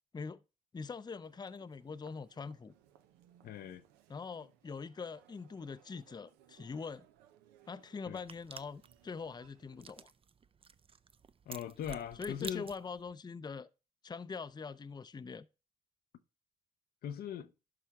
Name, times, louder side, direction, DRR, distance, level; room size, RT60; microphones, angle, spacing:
voice 1, 0.7-2.7 4.1-7.1 7.7-10.1 12.2-13.7 14.0-15.5, left 5 dB, 25° left, 0.5 m, -43 dB
Human voice, 1.2-10.0, right 11 dB, 90° right, 0.6 m, -65 dB
voice 2, 3.4-3.8 8.1-8.2 11.5-12.7 17.0-17.5, left 9 dB, 70° left, 0.6 m, -40 dB
sound 1, 8.1-13.1, right 6 dB, 35° right, 0.5 m, -51 dB
11.5 x 4.3 x 3.5 m
supercardioid pair, 50°, 16 cm